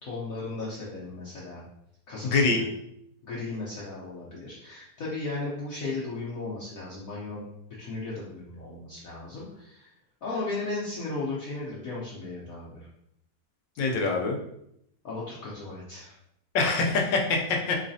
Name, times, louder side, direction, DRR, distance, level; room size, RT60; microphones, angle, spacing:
voice 1, 0.0-1.6 2.1-2.7 3.2-7.5 7.8-9.9 10.2-12.9 15.0-16.1, left 3 dB, 60° left, -7 dB, 1.0 m, -36 dB
voice 2, 2.2-2.6 13.8-14.4 16.5-17.7, left 3 dB, 80° left, 2 dB, 1.3 m, -24 dB
4.0 x 3.2 x 2.6 m, 0.76 s
omnidirectional pair, 2.0 m